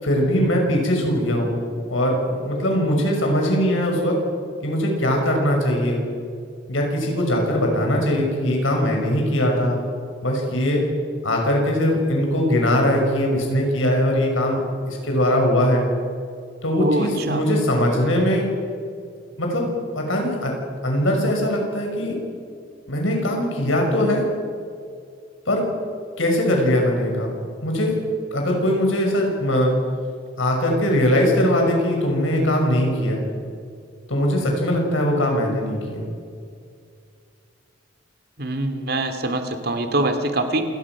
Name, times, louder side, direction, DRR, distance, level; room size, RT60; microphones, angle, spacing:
voice 1, 0.0-1.6 1.9-4.2 4.6-6.0 6.7-9.8 10.2-10.8 11.2-14.6 14.9-15.9 16.6-18.5 19.4-19.7 19.9-20.5 20.8-22.2 22.9-24.2 25.5-25.7 26.2-27.4 27.6-28.0 28.3-29.7 30.4-33.2 34.1-36.1, equal, 90° left, 1 dB, 6.0 m, -21 dB
voice 2, 16.8-17.4 38.4-40.6, right 2 dB, 50° right, 6 dB, 2.4 m, -24 dB
28.0 x 19.0 x 6.1 m, 2.3 s
head